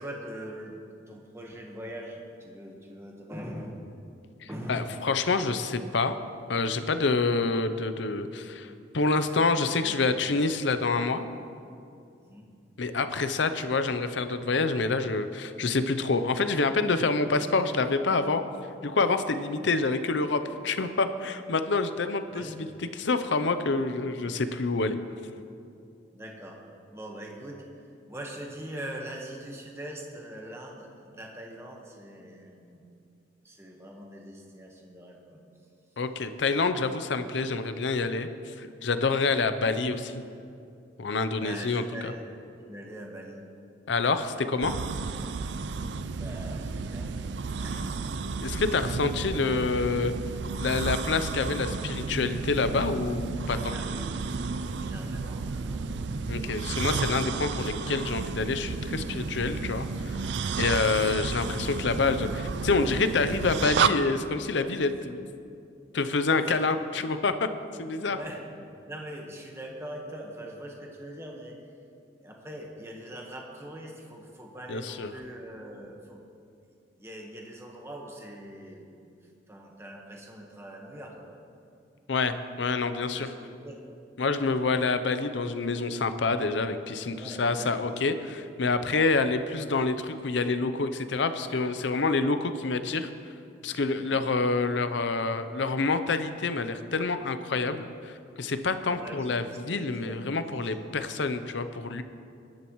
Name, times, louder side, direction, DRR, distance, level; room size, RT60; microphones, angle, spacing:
voice 1, 0.0-3.9 4.5-4.9 9.5-10.6 12.2-12.5 22.3-22.6 26.1-26.6 26.9-27.7 28.1-32.9 33.4-35.4 41.4-42.3 42.7-43.5 45.9-47.3 47.6-48.4 53.7-54.3 54.6-56.1 66.3-66.7 68.0-68.5 68.9-71.7 72.2-76.2 76.7-78.9 79.5-81.4 83.1-83.8 87.1-87.7 93.9-94.2 98.9-100.8, right 1 dB, 15° right, 0 dB, 1.3 m, -42 dB
voice 2, 4.4-6.1 6.5-11.2 12.8-18.4 18.8-22.5 23.0-25.0 36.0-38.3 38.6-40.2 41.0-42.1 43.9-44.7 48.4-50.1 50.6-53.8 56.3-60.2 60.6-65.3 65.9-66.7 67.0-67.5 67.8-68.2 74.7-75.1 82.1-83.3 84.2-93.1 93.6-102.0, left 3 dB, 75° left, 10 dB, 0.7 m, -27 dB
sound 1, 44.6-63.9, right 4 dB, 70° right, 0.4 m, -32 dB
20.5 x 10.5 x 3.1 m, 2.5 s
head